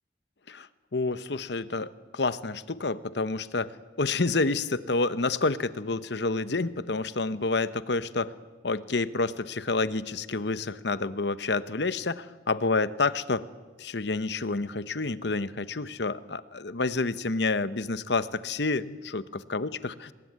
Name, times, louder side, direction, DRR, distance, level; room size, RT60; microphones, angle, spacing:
voice 1, 0.5-3.7 4.0-8.3 8.6-13.4 13.8-20.1, left 3 dB, 65° left, 15 dB, 1.0 m, -29 dB
25.0 x 20.0 x 9.5 m, 1.4 s
head